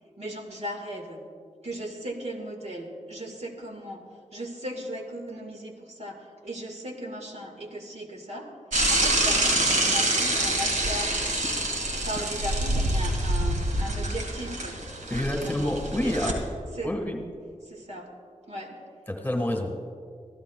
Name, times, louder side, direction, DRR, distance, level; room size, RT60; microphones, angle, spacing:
voice 1, 0.2-1.2 1.6-4.0 4.3-8.5 8.9-11.1 11.9-14.8 15.4-15.7 16.0-16.2 16.8-16.9 17.7-18.1 18.5-18.8, equal, 60° right, 2 dB, 1.8 m, -37 dB
Bicycle / Mechanisms, 8.7-16.3, right 1 dB, 75° right, 2.1 m, -26 dB
voice 2, 15.1-16.5 16.8-17.2 19.1-19.8, left 1 dB, 15° left, 3 dB, 1.7 m, -28 dB
24.0 x 15.5 x 2.3 m, 2.1 s
wide cardioid pair, 90°, 13 cm